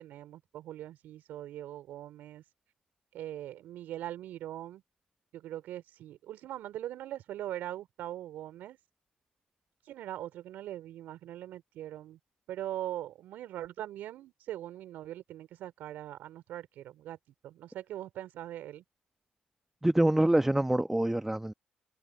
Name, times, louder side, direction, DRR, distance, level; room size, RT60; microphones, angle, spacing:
voice 1, 0.0-2.4 3.1-4.8 5.3-8.8 9.9-12.2 12.5-17.2 17.4-18.8, right 13 dB, 70° right, 3.8 m, -41 dB
voice 2, 19.8-21.5, right 1 dB, 10° right, 1.1 m, -25 dB
hypercardioid pair, 50°, 3 cm